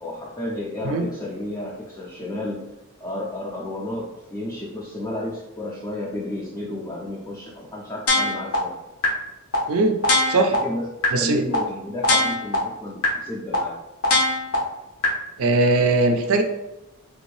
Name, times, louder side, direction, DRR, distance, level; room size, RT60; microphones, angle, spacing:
voice 1, 0.0-2.7 3.0-8.7 10.6-13.8, left 1 dB, 15° left, -4 dB, 0.4 m, -32 dB
sound 1, 8.1-8.6 9.0-9.1 9.5-9.6 10.0-10.6 11.0-11.1 11.5-11.6 12.0-12.6 13.0-13.1 13.5-13.6 14.0-14.6 15.0-15.1, left 2 dB, 70° left, 0.9 m, -20 dB
voice 2, 11.1-11.4 15.4-16.4, right 3 dB, 65° right, 5 dB, 0.4 m, -20 dB
3.3 x 2.6 x 3.1 m, 0.95 s
head